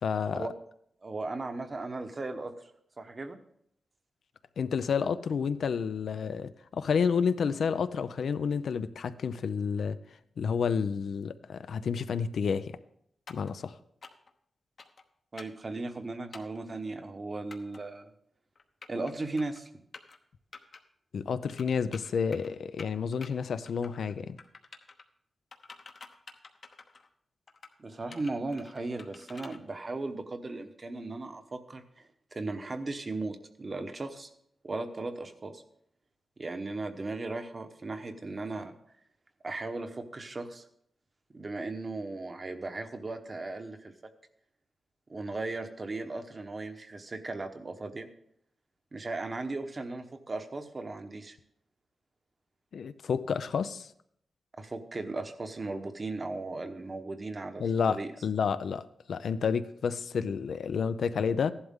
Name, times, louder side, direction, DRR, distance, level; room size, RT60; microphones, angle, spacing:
voice 1, 0.0-0.5 4.6-10.0 10.4-12.8 13.3-13.7 21.1-24.4 52.7-53.9 57.6-61.5, left 6 dB, 75° left, 12 dB, 0.6 m, -30 dB
voice 2, 1.0-2.5 3.0-3.4 15.3-18.1 18.9-19.7 27.8-34.3 34.6-35.6 36.4-38.8 39.4-40.6 41.3-43.9 45.1-48.1 48.9-51.4 54.6-58.1, right 2 dB, 30° right, 8 dB, 1.0 m, -37 dB
sound 1, 13.3-13.5 14.0-14.3 14.8-15.0 15.4-15.6 16.3-16.6 17.5-17.8 18.6-19.1 19.4-19.6 19.9-20.2 20.5-20.8 21.6-22.5 22.8-23.3 23.6-24.1 24.4-25.0 25.5-27.1 27.5-27.7 28.1-29.6, left 4 dB, 50° left, 1.0 m, -49 dB
15.0 x 11.5 x 3.7 m, 0.70 s
wide cardioid pair, 135°, 0 cm